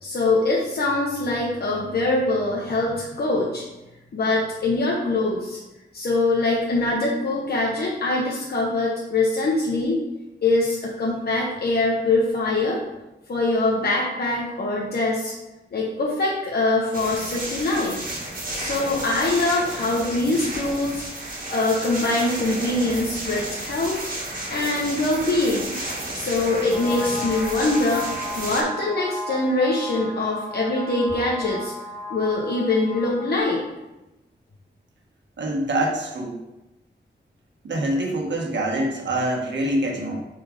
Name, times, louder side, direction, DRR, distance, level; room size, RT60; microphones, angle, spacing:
voice 1, 0.0-3.6 4.1-5.6 5.9-10.0 10.4-12.8 13.3-15.3 15.7-18.0 18.5-21.0 21.5-24.0 24.5-25.7 26.1-28.1 28.3-31.7 32.1-33.6, left 2 dB, 60° left, -4 dB, 1.0 m, -23 dB
sound 1, 16.9-28.6, right 1 dB, 50° right, 1.7 m, -32 dB
sound 2, 26.7-33.4, left 2 dB, 30° left, 1.1 m, -34 dB
voice 2, 35.4-36.4 37.6-40.2, right 1 dB, 90° right, 0 dB, 1.2 m, -25 dB
4.8 x 4.4 x 5.0 m, 1.0 s
wide cardioid pair, 105°, 18 cm